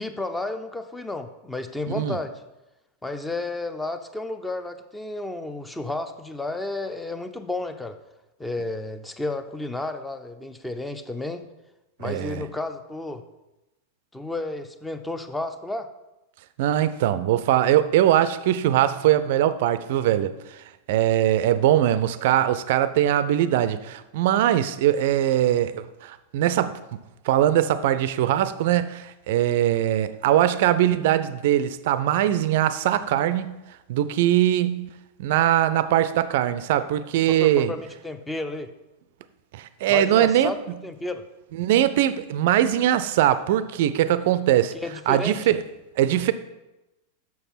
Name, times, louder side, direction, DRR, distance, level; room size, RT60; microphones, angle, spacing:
voice 1, 0.0-2.3 3.0-8.0 8.4-11.5 12.0-13.2 14.1-15.9 37.4-38.7 39.9-40.5 40.8-41.2 44.7-45.4, left 2 dB, 5° left, 0.6 m, -32 dB
voice 2, 1.9-2.2 12.0-12.4 16.6-20.3 20.9-27.0 27.2-33.6 33.9-34.9 35.2-37.7 39.5-40.5 41.6-44.7 45.1-45.6 46.0-46.3, right 12 dB, 50° right, 0.5 m, -21 dB
7.1 x 6.2 x 5.7 m
figure-of-eight pair, 90°, 0 cm